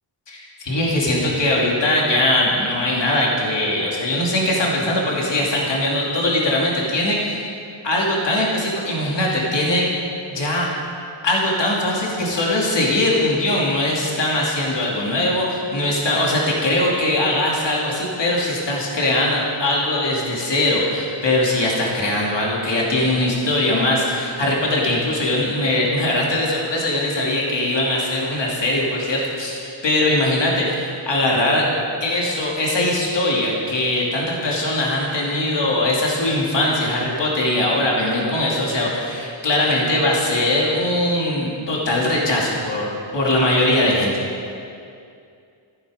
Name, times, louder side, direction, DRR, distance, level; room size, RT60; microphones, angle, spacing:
voice 1, 0.3-7.5 7.8-9.9 10.3-10.7 11.2-31.7 32.0-44.2, left 1 dB, 55° left, -3 dB, 3.0 m, -21 dB
15.0 x 14.5 x 5.2 m, 2.4 s
wide cardioid pair, 165°, 50 cm